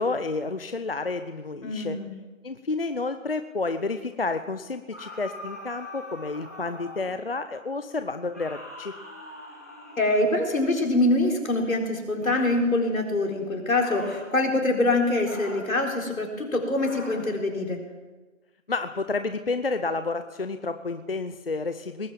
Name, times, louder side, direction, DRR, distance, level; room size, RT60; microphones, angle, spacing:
voice 1, 0.0-2.0 2.4-8.9 18.7-22.1, left 3 dB, 45° left, 9 dB, 0.7 m, -30 dB
voice 2, 1.6-2.1 10.0-17.8, left 2 dB, 80° left, 1 dB, 4.2 m, -24 dB
sound 1, 4.9-7.2 8.3-10.6 12.2-12.6 13.8-14.3 15.2-15.8 16.8-17.3, left 1 dB, 10° left, 1.0 m, -42 dB
19.0 x 9.5 x 7.2 m, 1.2 s
figure-of-eight pair, 170°, 40 cm